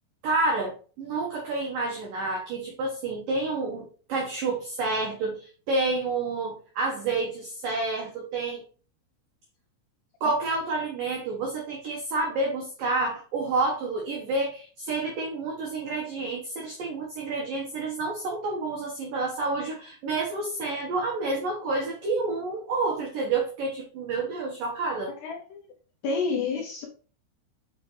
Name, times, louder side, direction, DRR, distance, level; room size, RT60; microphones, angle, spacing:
voice 1, 0.2-8.6 10.2-25.1, right 3 dB, 90° right, 0 dB, 1.9 m, -29 dB
voice 2, 25.2-25.7 26.0-26.9, left 4 dB, 80° left, 1 dB, 2.4 m, -29 dB
7.0 x 5.8 x 3.1 m, 0.39 s
omnidirectional pair, 5.8 m